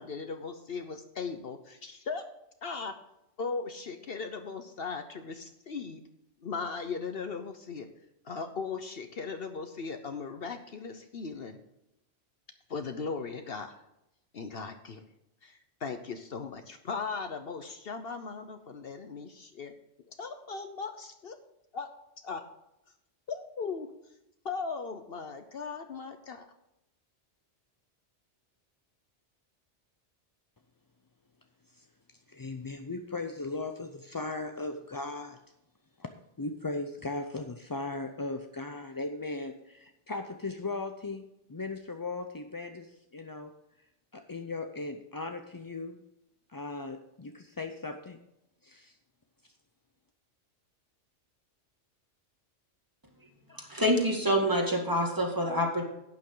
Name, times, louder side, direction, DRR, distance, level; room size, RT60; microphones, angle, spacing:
voice 1, 0.0-2.2 2.6-2.9 3.4-6.0 6.4-7.9 8.2-11.6 12.7-13.8 14.3-15.0 15.4-19.7 20.2-21.4 21.7-21.9 22.2-22.4 23.3-23.9 24.4-26.5, left 5 dB, 55° left, 7 dB, 1.0 m, -38 dB
voice 2, 32.3-35.4 36.0-36.1 36.4-43.5 44.1-46.0 46.5-48.2 48.6-48.9, left 3 dB, 30° left, 6 dB, 0.4 m, -37 dB
voice 3, 53.5-55.8, equal, 15° right, 1 dB, 2.0 m, -27 dB
11.5 x 8.9 x 3.8 m, 0.85 s
omnidirectional pair, 1.2 m